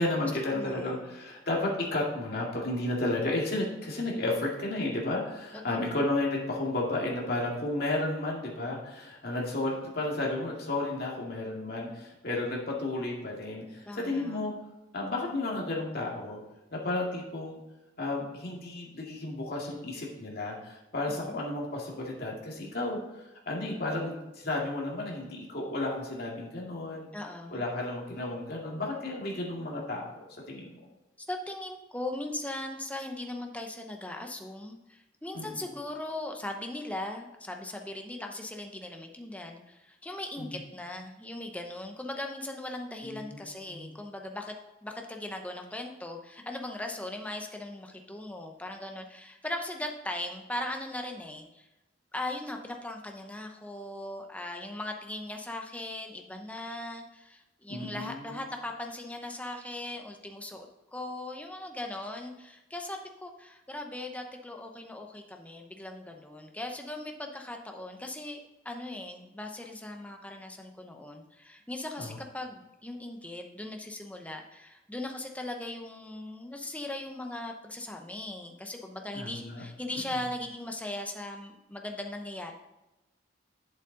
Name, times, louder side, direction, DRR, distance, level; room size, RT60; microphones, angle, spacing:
voice 1, 0.0-14.5 14.9-16.4 16.7-17.6 18.0-27.1 27.5-30.1 30.5-30.8 35.3-35.7 40.4-40.6 43.0-43.9 57.7-58.4 72.0-72.2 79.1-79.6 80.1-80.2, left 2 dB, 55° left, -2 dB, 2.2 m, -33 dB
voice 2, 0.5-1.0 5.7-6.0 13.9-14.4 21.1-21.4 27.1-27.6 31.2-44.5 44.8-51.7 52.1-82.5, left 1 dB, 10° left, 3 dB, 0.8 m, -39 dB
8.2 x 7.5 x 3.9 m, 0.97 s
head